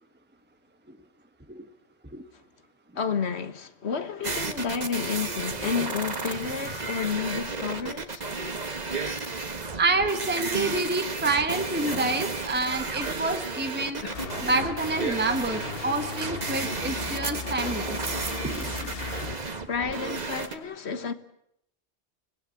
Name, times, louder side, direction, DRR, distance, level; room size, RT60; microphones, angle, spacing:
voice 1, 2.9-8.2 19.7-21.1, left 6 dB, 75° left, 1.6 m, -30 dB
sound 1, 4.2-20.5, right 3 dB, 40° right, 1.5 m, -33 dB
voice 2, 9.8-14.0 14.4-18.0 18.4-18.9, right 2 dB, 10° right, 1.2 m, -28 dB
Cough, 10.5-10.8 11.2-11.5 11.9-12.2 14.0-14.5 15.1-15.8, left 2 dB, 35° left, 1.8 m, -42 dB
sound 2, 14.1-19.3, left 4 dB, 60° left, 1.6 m, -36 dB
25.0 x 18.5 x 8.4 m
omnidirectional pair, 1.1 m